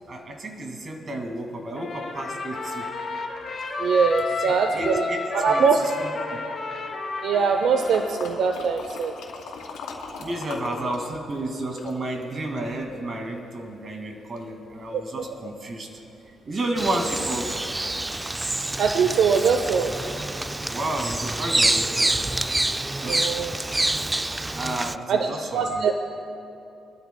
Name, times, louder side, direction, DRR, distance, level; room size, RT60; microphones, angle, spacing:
voice 1, 0.1-2.9 4.4-6.4 10.2-15.9 16.5-17.6 20.7-22.3 23.0-23.4 24.1-24.2 24.5-25.9, right 1 dB, 40° right, 3 dB, 2.1 m, -32 dB
Trumpet, 1.8-8.4, left 3 dB, 45° left, 2.2 m, -32 dB
voice 2, 3.8-5.1 5.3-5.8 7.2-9.1 14.9-15.0 18.8-19.9 23.1-23.6 25.1-25.9, right 5 dB, 70° right, 6 dB, 0.7 m, -22 dB
sound 1, 7.8-11.0 11.3-12.8 13.3-13.4, left 5 dB, 85° left, 2.7 m, -39 dB
Bird vocalization bird call bird song, 16.8-25.0, right 2 dB, 15° right, 0.3 m, -27 dB
23.5 x 13.0 x 2.2 m, 2.7 s
cardioid pair, 90°, 0 cm